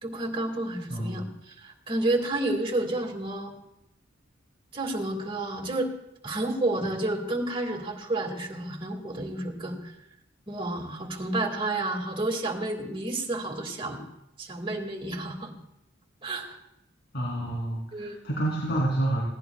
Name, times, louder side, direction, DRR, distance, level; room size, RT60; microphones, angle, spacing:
voice 1, 0.0-3.5 4.7-5.9 6.2-9.9 10.5-14.0 14.4-15.5 16.2-16.6 17.9-18.2, right 2 dB, 25° right, 3 dB, 2.0 m, -30 dB
voice 2, 0.9-1.2 17.1-19.2, right 1 dB, 55° left, -4 dB, 3.0 m, -28 dB
21.0 x 16.5 x 2.3 m, 0.84 s
head